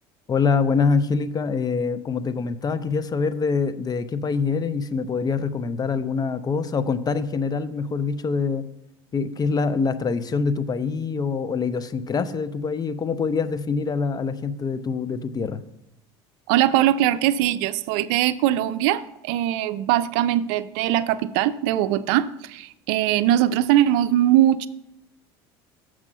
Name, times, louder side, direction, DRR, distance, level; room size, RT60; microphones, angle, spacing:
voice 1, 0.3-8.7 9.1-15.6, left 5 dB, 30° left, 14 dB, 0.6 m, -25 dB
voice 2, 16.5-24.7, right 12 dB, 70° right, 15 dB, 0.4 m, -21 dB
7.2 x 6.2 x 5.5 m, 0.82 s
hypercardioid pair, 80°, 13 cm